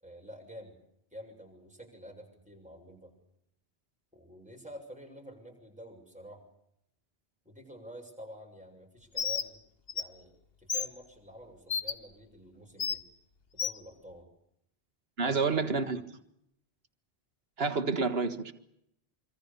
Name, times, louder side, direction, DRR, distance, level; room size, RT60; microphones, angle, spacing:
voice 1, 0.0-0.8 1.1-3.1 4.1-6.4 7.4-9.6 9.9-13.0 13.5-14.3 15.2-15.8, equal, 5° right, 7.0 m, -49 dB
Bird, 9.2-9.5 9.9-10.0 10.7-10.9 11.7-11.9 12.8-13.0 13.6-13.8, left 6 dB, 65° left, 1.4 m, -31 dB
voice 2, 15.2-16.0 17.6-18.5, right 4 dB, 70° right, 1.9 m, -29 dB
26.0 x 25.0 x 6.9 m
omnidirectional pair, 1.1 m